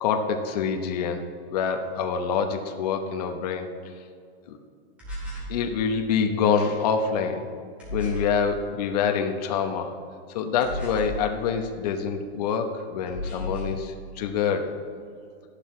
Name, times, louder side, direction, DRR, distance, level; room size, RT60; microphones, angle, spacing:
voice 1, 0.0-1.2 1.5-3.7 5.5-7.5 7.9-10.0 10.3-14.7, left 6 dB, 35° left, 5 dB, 0.9 m, -26 dB
sound 1, 5.0-5.6 7.8-8.4 10.6-11.3 13.1-13.8, left 1 dB, 5° right, 3.1 m, -33 dB
14.0 x 11.5 x 3.2 m, 2.3 s
supercardioid pair, 175°, 34 cm